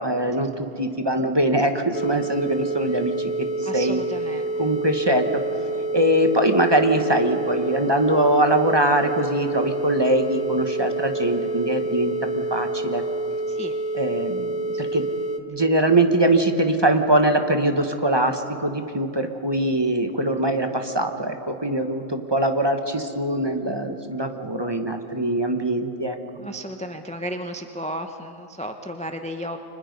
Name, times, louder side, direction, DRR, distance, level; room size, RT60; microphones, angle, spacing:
voice 1, 0.0-4.0 4.6-5.3 5.9-13.0 13.9-15.1 15.5-26.2, right 1 dB, 20° right, 6 dB, 1.2 m, -22 dB
sound 1, 1.9-15.4, right 2 dB, 35° left, 1.0 m, -28 dB
voice 2, 3.6-4.7 13.5-13.7 14.7-14.8 26.4-29.6, equal, 5° left, 6 dB, 0.7 m, -34 dB
30.0 x 25.0 x 5.4 m, 2.9 s
omnidirectional pair, 1.4 m